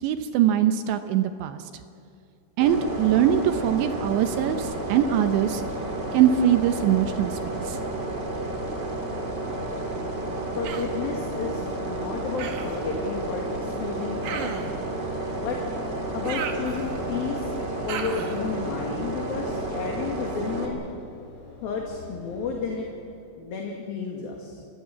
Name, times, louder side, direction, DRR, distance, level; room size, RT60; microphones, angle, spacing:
voice 1, 0.0-1.6 2.6-5.6 6.1-7.4 7.6-7.8, right 10 dB, 75° right, 8 dB, 2.9 m, -22 dB
sound 1, 2.6-20.6, right 2 dB, 25° right, 2.7 m, -31 dB
voice 2, 10.5-11.6 11.9-14.7 15.4-15.6 16.1-17.5 17.8-20.8 21.6-22.9 23.4-24.6, left 5 dB, 60° left, 0 dB, 3.5 m, -32 dB
Human voice, 10.6-11.0 12.4-12.8 14.2-14.8 16.2-17.1 17.9-18.4, right 6 dB, 55° right, 2.4 m, -34 dB
Train / Engine / Alarm, 15.2-23.5, left 2 dB, 85° left, 8.4 m, -47 dB
30.0 x 15.5 x 8.5 m, 2.4 s
omnidirectional pair, 5.5 m